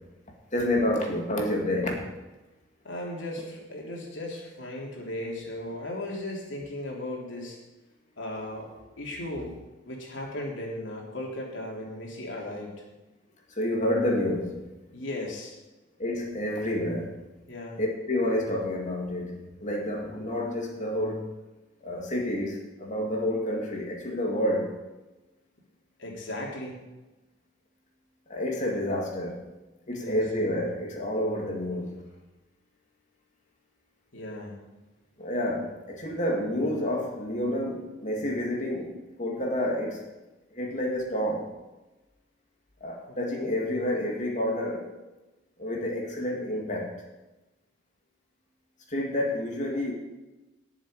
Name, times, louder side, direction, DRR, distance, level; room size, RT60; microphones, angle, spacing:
voice 1, 0.5-2.1 13.5-14.6 16.0-17.2 17.8-21.3 21.8-24.8 28.3-29.4 29.9-32.0 35.2-40.0 40.5-41.5 42.8-44.9 45.6-46.9 48.9-49.9, left 1 dB, 40° left, 0 dB, 2.7 m, -29 dB
voice 2, 2.8-7.6 8.2-9.5 9.8-12.8 14.9-15.5 17.5-17.8 26.0-26.8 29.9-30.2 34.1-34.6 43.1-43.2, left 1 dB, 70° left, -2 dB, 3.2 m, -36 dB
19.0 x 7.2 x 5.1 m, 1.1 s
head